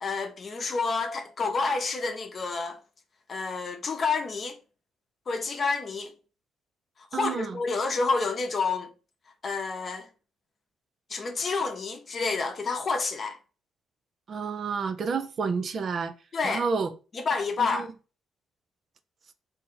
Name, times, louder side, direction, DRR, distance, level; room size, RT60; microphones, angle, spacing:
voice 1, 0.0-2.8 3.3-4.6 5.3-6.1 7.1-8.9 9.4-10.1 11.1-13.4 16.3-16.7 17.1-17.9, left 4 dB, 45° left, 0.7 m, -29 dB
voice 2, 7.1-7.6 14.3-16.1 16.4-16.9 17.6-17.9, right 5 dB, 50° right, 0.4 m, -30 dB
3.2 x 2.7 x 3.7 m
cardioid pair, 90°, 0 cm